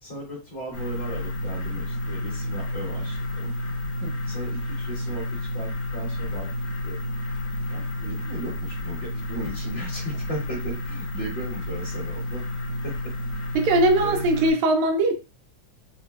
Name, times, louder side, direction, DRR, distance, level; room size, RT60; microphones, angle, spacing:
voice 1, 0.0-3.5 4.3-7.0 7.7-12.5 12.8-13.1 14.0-14.3, right 1 dB, 40° left, 2.2 m, -37 dB
sound 1, 0.7-14.5, left 1 dB, 55° left, 2.0 m, -31 dB
voice 2, 13.6-15.1, right 2 dB, 80° right, 1.7 m, -20 dB
5.2 x 2.8 x 2.3 m
omnidirectional pair, 3.7 m